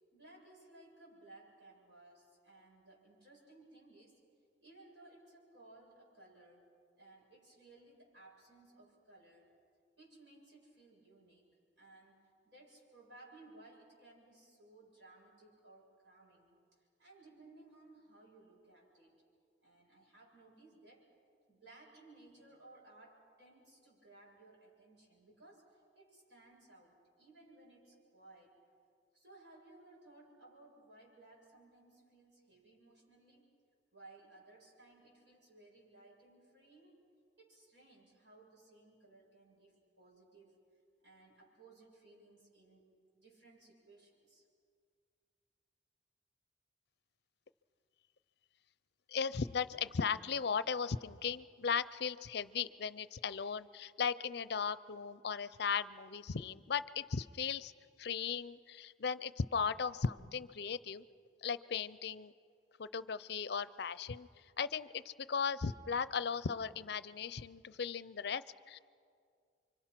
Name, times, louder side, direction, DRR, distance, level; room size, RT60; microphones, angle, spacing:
voice 1, 0.1-4.2 4.6-6.7 7.0-9.5 10.0-11.5 11.7-19.2 19.6-21.1 21.5-28.6 29.1-33.5 33.9-37.0 37.4-40.6 41.0-44.5, right 2 dB, 65° right, -3 dB, 7.6 m, -60 dB
voice 2, 49.1-57.7 58.0-61.0 61.4-62.3 62.8-64.3 64.6-68.8, left 6 dB, 60° left, 16 dB, 0.5 m, -37 dB
29.0 x 25.0 x 6.0 m, 2.2 s
head